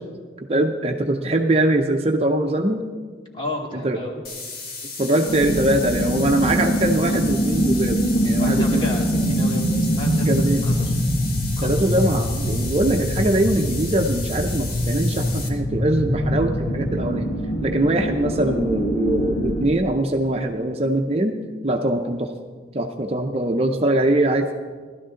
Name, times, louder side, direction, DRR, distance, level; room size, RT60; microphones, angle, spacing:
voice 1, 0.5-2.8 3.8-4.0 5.0-8.8 10.2-10.6 11.6-17.3 17.6-21.4 21.6-22.3 22.7-24.5, right 1 dB, 30° right, 4 dB, 0.6 m, -22 dB
voice 2, 3.3-4.2 8.4-11.0 11.6-11.9, left 1 dB, 25° left, -1 dB, 2.1 m, -32 dB
sound 1, 4.2-15.5, left 4 dB, 50° left, 1.6 m, -35 dB
sound 2, 5.3-19.7, equal, 85° left, 1.7 m, -23 dB
16.0 x 12.5 x 3.8 m, 1.6 s
head